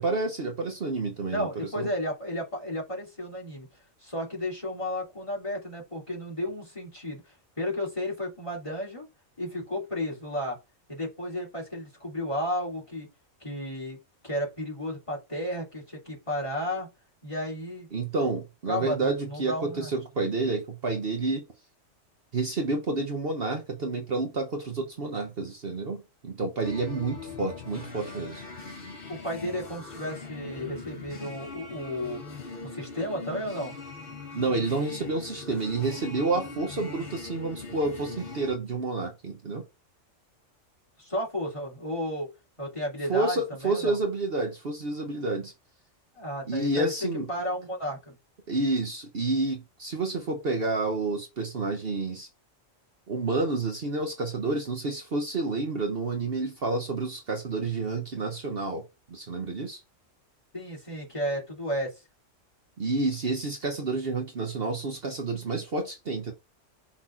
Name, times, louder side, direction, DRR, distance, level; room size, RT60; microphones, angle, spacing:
voice 1, 0.0-1.5 1.8-1.9 17.9-21.4 22.3-28.4 34.3-39.6 43.1-45.5 46.5-47.3 48.5-52.3 53.1-59.8 62.8-66.3, right 3 dB, 50° right, 1.2 m, -29 dB
voice 2, 1.3-3.7 4.0-9.1 9.4-10.6 10.9-13.1 13.4-16.9 17.2-17.9 18.7-19.9 29.1-32.2 32.6-33.7 41.0-42.3 42.6-44.0 46.1-48.1 60.5-61.9, left 1 dB, 25° left, 3.0 m, -33 dB
sound 1, 26.6-38.6, left 4 dB, 45° left, 1.6 m, -41 dB
6.0 x 4.2 x 4.3 m
omnidirectional pair, 1.3 m